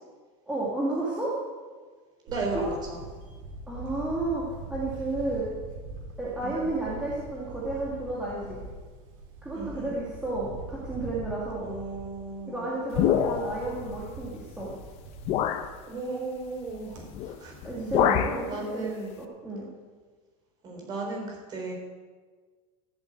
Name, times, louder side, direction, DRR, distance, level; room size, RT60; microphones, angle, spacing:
voice 1, 0.5-1.3 2.5-2.7 3.7-4.4 4.7-5.5 6.2-8.6 9.4-11.7 12.4-14.7 17.6-18.5 18.7-18.9 19.2-19.7, right 2 dB, 5° right, -7 dB, 2.2 m, -32 dB
voice 2, 2.2-3.0 6.4-6.7 9.5-9.9 11.6-12.7 15.8-17.7 18.5-19.2 20.6-21.7, right 3 dB, 25° right, -1 dB, 4.1 m, -35 dB
Camera, 2.3-17.0, right 2 dB, 65° right, 4.0 m, -43 dB
sound 1, 12.9-13.7 14.6-14.7 15.3-15.7 17.1-17.4 17.6-18.4, left 9 dB, 35° left, 0.8 m, -25 dB
14.0 x 8.1 x 8.1 m, 1.4 s
supercardioid pair, 175°, 19 cm